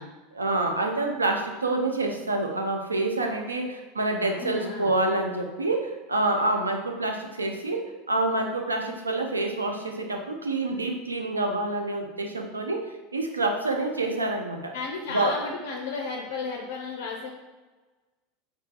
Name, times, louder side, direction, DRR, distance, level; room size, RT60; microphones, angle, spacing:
voice 1, 0.3-12.9 13.1-14.7 15.1-15.4, right 2 dB, 85° right, 3 dB, 0.4 m, -27 dB
voice 2, 4.3-4.9 14.7-17.3, left 4 dB, 65° left, 1 dB, 0.4 m, -34 dB
4.4 x 3.2 x 2.4 m, 1.3 s
figure-of-eight pair, 80°, 0 cm